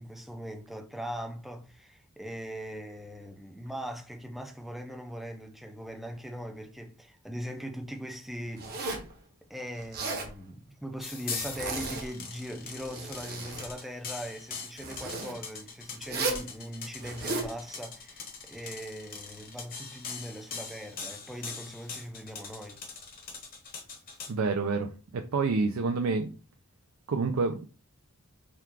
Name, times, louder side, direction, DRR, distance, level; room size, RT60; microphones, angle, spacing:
voice 1, 0.0-8.9 9.5-22.8, equal, ahead, 0.4 m, -40 dB
Zipper (clothing), 8.6-9.1 9.8-10.3 11.3-12.1 12.7-13.7 14.8-15.3 16.0-16.5 17.0-17.5, right 3 dB, 45° right, 0.9 m, -35 dB
sound 1, 11.0-24.3, left 5 dB, 40° left, 1.0 m, -41 dB
voice 2, 24.3-26.3 27.1-27.7, right 4 dB, 65° right, 0.4 m, -28 dB
3.6 x 2.3 x 4.5 m
head